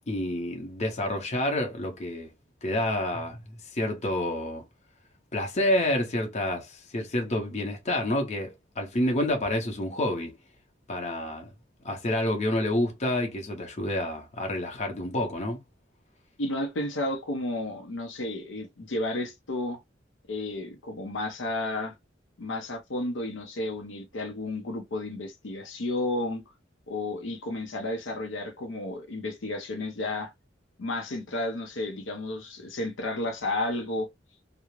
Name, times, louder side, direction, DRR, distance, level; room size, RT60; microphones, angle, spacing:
voice 1, 0.1-2.3 2.6-3.4 3.7-4.6 5.3-10.3 10.9-11.5 11.8-15.6, left 1 dB, 40° left, 0.7 m, -28 dB
voice 2, 16.4-19.8 20.3-21.9 22.4-26.4 26.9-30.3 30.8-34.1, left 2 dB, 75° left, 0.6 m, -32 dB
2.4 x 2.0 x 3.0 m
head